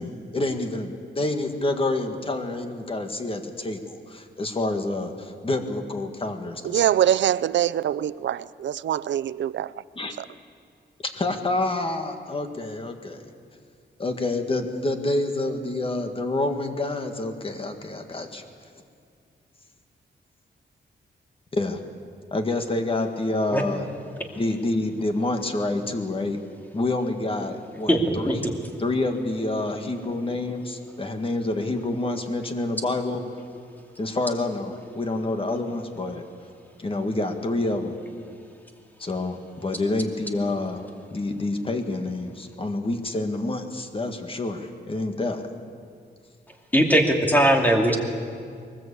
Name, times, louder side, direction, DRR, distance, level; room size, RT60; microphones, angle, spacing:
voice 1, 0.0-6.9 10.0-10.1 11.1-13.3 14.0-18.4 21.5-21.8 22.3-23.9 24.4-26.4 26.7-28.5 28.8-33.2 34.0-36.2 36.8-38.0 39.0-40.8 41.1-45.4, left 2 dB, 30° left, 6 dB, 1.8 m, -28 dB
voice 2, 6.7-9.7, right 10 dB, 90° right, 17 dB, 0.5 m, -23 dB
voice 3, 27.9-28.5 29.6-29.7 30.9-31.0 33.7-33.8 46.7-48.0, equal, 10° left, 2 dB, 2.5 m, -20 dB
22.0 x 20.0 x 8.5 m, 2.2 s
wide cardioid pair, 145°, 18 cm